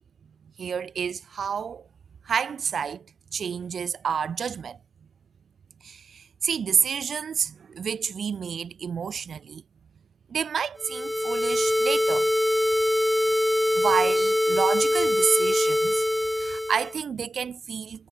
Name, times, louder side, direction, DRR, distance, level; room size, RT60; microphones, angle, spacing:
voice 1, 0.6-1.9 2.2-3.1 3.3-4.8 5.8-9.6 10.3-12.3 13.7-16.0 16.4-18.1, right 7 dB, 45° right, 3.0 m, -29 dB
sound 1, 10.8-17.0, left 1 dB, 5° left, 0.5 m, -23 dB
supercardioid pair, 80°, 0 cm